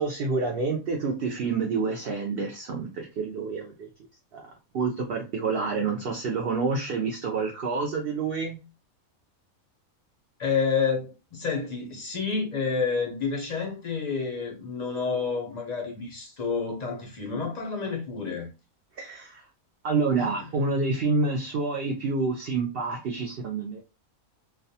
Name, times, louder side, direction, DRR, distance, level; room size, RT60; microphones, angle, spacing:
voice 1, 0.0-3.9 4.3-8.6 19.0-19.4 19.8-23.8, right 4 dB, 70° right, 0.5 m, -28 dB
voice 2, 10.4-18.5 20.1-20.5, left 5 dB, 50° left, 0.5 m, -29 dB
2.4 x 2.2 x 2.7 m
omnidirectional pair, 1.5 m